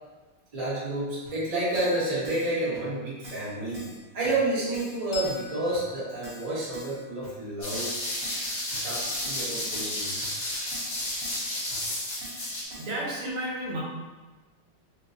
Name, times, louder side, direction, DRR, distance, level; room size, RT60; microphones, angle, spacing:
voice 1, 0.5-3.8 4.1-7.9 8.8-10.2, right 2 dB, 25° right, -10 dB, 0.9 m, -30 dB
Keyboard (musical), 1.3-1.4 1.7-2.0 2.2-2.5 2.7-2.8 3.2-3.5 3.7-4.0 4.2-4.3 4.7-5.0 5.2-5.5 5.7-5.8 6.2-6.5 6.7-7.0 7.2-7.3 7.7-8.0 8.2-8.5 8.7-8.8 9.2-9.5 9.7-10.0 10.2-10.3 10.7-10.9 11.2-11.4 11.7-11.8 12.2-12.4 12.7-12.9, equal, 60° right, 1.9 m, -44 dB
Bell, 5.1-8.2, left 5 dB, 65° left, 1.3 m, -43 dB
sound 1, 7.6-12.6, left 1 dB, 45° left, 0.7 m, -32 dB
voice 2, 12.8-13.8, right 1 dB, 80° right, -5 dB, 1.7 m, -33 dB
4.4 x 2.2 x 2.7 m, 1.2 s
omnidirectional pair, 2.4 m